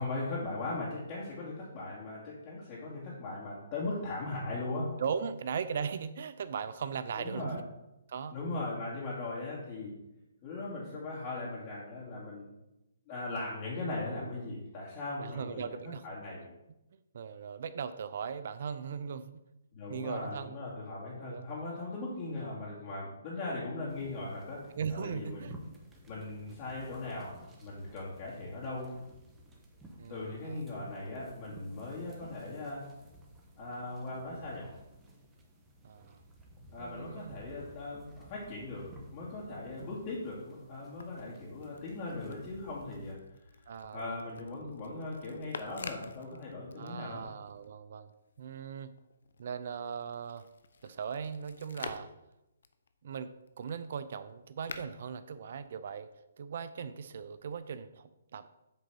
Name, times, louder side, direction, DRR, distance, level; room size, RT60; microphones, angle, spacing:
voice 1, 0.0-4.9 7.2-7.6 8.3-10.0 10.4-12.5 13.1-16.4 19.7-25.5 26.1-28.9 30.1-32.8 33.6-34.7 36.7-43.2 43.9-47.2, left 2 dB, 30° left, -7 dB, 2.4 m, -39 dB
voice 2, 5.0-7.6 8.1-8.4 15.2-16.1 17.1-19.4 19.9-20.6 21.2-21.5 24.7-25.6 30.0-30.6 35.8-36.2 36.8-37.4 43.7-44.2 46.8-48.1 48.4-48.9 49.4-50.5 50.8-52.1 53.0-53.3 53.6-56.1 56.4-58.5, right 6 dB, 55° right, 12 dB, 0.4 m, -38 dB
sound 1, 23.9-43.2, right 1 dB, 10° right, 1.1 m, -55 dB
sound 2, 40.7-47.7 48.1-56.2 57.1-57.8, left 5 dB, 70° left, 0.7 m, -50 dB
8.1 x 3.9 x 6.1 m, 0.93 s
hypercardioid pair, 150°, 0 cm